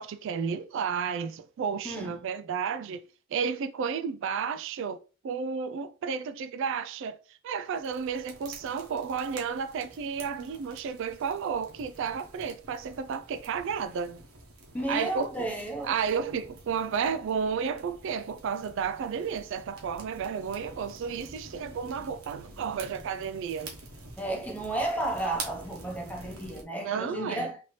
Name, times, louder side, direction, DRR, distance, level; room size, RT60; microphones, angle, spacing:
voice 1, 0.0-3.0 3.3-5.0 5.2-14.2 14.9-15.5 15.8-23.7 26.8-27.5, right 6 dB, 60° right, 0.3 m, -32 dB
voice 2, 1.8-2.2 14.7-16.0 24.2-27.6, right 1 dB, 5° left, 0.8 m, -33 dB
sound 1, 7.7-26.6, right 3 dB, 90° right, 1.2 m, -47 dB
4.2 x 2.8 x 3.1 m
head